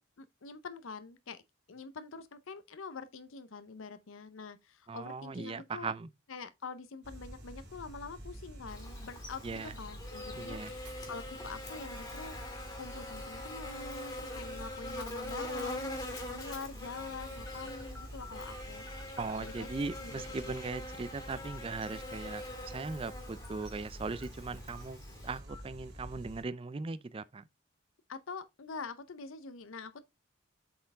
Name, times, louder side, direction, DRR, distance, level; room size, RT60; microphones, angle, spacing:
voice 1, 0.0-1.4 1.7-5.9 6.3-12.4 12.8-20.5 28.1-30.0, left 4 dB, 75° left, 0.7 m, -45 dB
voice 2, 4.9-6.1 9.4-9.7 10.4-10.7 19.2-27.4, right 4 dB, 25° right, 0.3 m, -39 dB
sound 1, 7.0-26.4, equal, 50° right, 2.5 m, -48 dB
Buzz, 8.7-25.4, left 1 dB, 15° left, 2.3 m, -44 dB
sound 2, 15.6-15.7 16.4-16.5 17.0-17.1 17.5-18.6 18.9-19.6 19.9-20.0 21.3-21.6 22.0-22.1 23.4-23.6 24.1-24.2 24.7-24.8 25.5-25.6, left 3 dB, ahead, 1.5 m, -52 dB
7.6 x 4.4 x 3.4 m
head